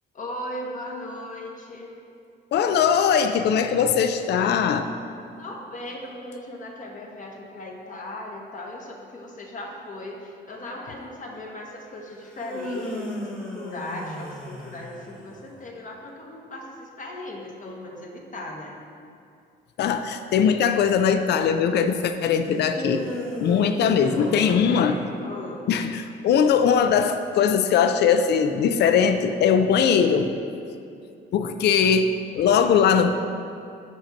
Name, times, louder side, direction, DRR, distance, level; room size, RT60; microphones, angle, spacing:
voice 1, 0.1-1.9 5.4-18.8 24.2-25.6, left 1 dB, 40° left, 0 dB, 1.1 m, -37 dB
voice 2, 2.5-4.9 19.8-23.0 23.4-25.0 25.7-30.3 31.3-33.1, left 7 dB, 60° left, 8 dB, 0.4 m, -20 dB
sound 1, 12.2-15.5 22.6-25.6, left 1 dB, 5° left, 1.0 m, -35 dB
5.4 x 4.4 x 5.1 m, 2.4 s
cardioid pair, 90°, 20 cm